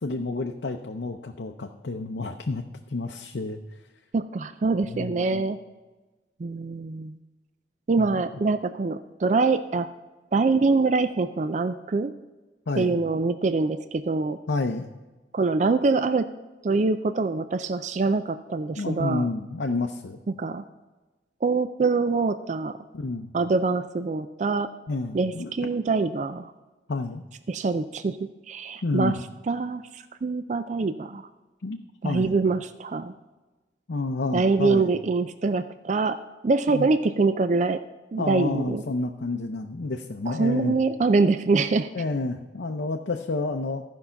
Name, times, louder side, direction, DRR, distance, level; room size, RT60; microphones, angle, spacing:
voice 1, 0.0-2.6 2.9-3.6 4.8-5.4 8.0-8.2 12.7-13.0 14.5-14.9 18.8-20.2 22.9-23.3 24.9-25.5 26.9-27.2 28.8-29.2 31.6-31.8 32.0-32.3 33.9-34.9 36.7-36.9 38.2-40.8 41.9-43.8, left 3 dB, 70° left, 3 dB, 0.6 m, -29 dB
voice 2, 4.1-5.6 6.4-7.2 7.9-9.9 10.3-12.1 12.8-14.4 15.3-16.3 16.6-19.3 20.4-20.6 21.4-22.8 23.3-24.7 25.1-26.5 27.5-28.2 28.5-29.2 29.5-31.3 32.0-33.1 34.3-36.2 36.4-37.8 38.1-38.8 40.3-41.9, right 3 dB, 40° right, 11 dB, 0.4 m, -24 dB
14.5 x 5.5 x 5.7 m, 1.2 s
head